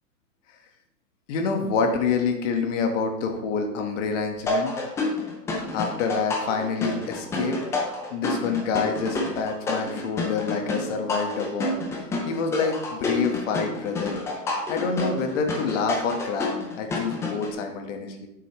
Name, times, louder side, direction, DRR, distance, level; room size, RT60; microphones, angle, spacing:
voice 1, 1.3-4.7 5.7-7.6 8.1-11.8 12.3-14.2 14.7-18.3, left 5 dB, 45° left, 4 dB, 1.6 m, -27 dB
sound 1, 4.5-17.5, left 2 dB, 5° left, 0.4 m, -29 dB
9.0 x 6.7 x 3.2 m, 0.87 s
hypercardioid pair, 125°, 49 cm